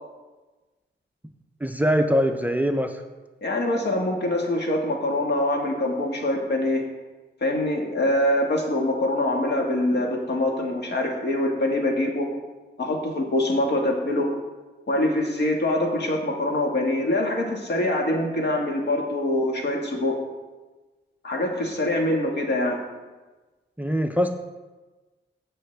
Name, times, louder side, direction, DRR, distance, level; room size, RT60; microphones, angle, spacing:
voice 1, 1.6-3.0 23.8-24.4, equal, 10° right, 7 dB, 0.4 m, -22 dB
voice 2, 3.4-6.9 7.4-12.3 12.8-14.3 14.9-20.2 21.2-22.8, left 1 dB, 65° left, 1 dB, 1.6 m, -24 dB
15.5 x 5.6 x 3.3 m, 1.2 s
wide cardioid pair, 150°, 19 cm